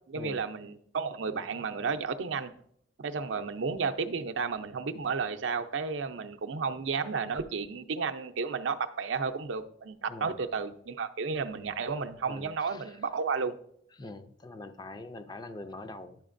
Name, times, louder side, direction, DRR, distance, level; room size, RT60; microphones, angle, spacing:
voice 1, 0.1-2.5 3.0-13.6, right 5 dB, 85° right, 7 dB, 0.5 m, -32 dB
voice 2, 12.3-12.9 14.0-16.2, left 2 dB, 20° left, 9 dB, 0.4 m, -44 dB
10.5 x 7.1 x 2.5 m, 0.67 s
head